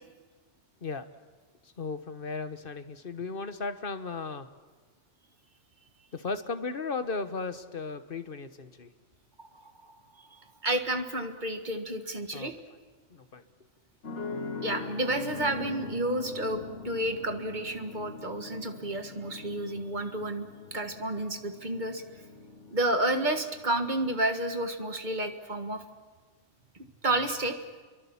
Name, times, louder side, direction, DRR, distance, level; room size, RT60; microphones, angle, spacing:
voice 1, 1.6-4.5 6.1-8.9 12.3-12.5 13.1-13.4, left 4 dB, 50° left, 10 dB, 1.3 m, -36 dB
voice 2, 9.4-10.3 10.6-12.5 14.6-22.0 22.7-25.8 27.0-27.6, right 1 dB, 40° right, 6 dB, 1.8 m, -31 dB
sound 1, 14.0-24.1, left 4 dB, 75° left, 2.0 m, -42 dB
29.5 x 23.0 x 7.2 m, 1.4 s
omnidirectional pair, 1.2 m